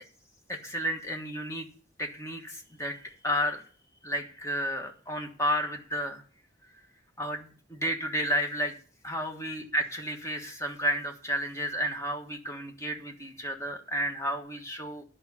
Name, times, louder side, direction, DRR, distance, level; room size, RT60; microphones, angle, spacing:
voice 1, 0.5-1.7 2.0-3.6 4.0-6.2 7.2-8.7 9.0-15.0, equal, 15° left, 3 dB, 1.4 m, -32 dB
11.0 x 5.3 x 8.6 m, 0.43 s
head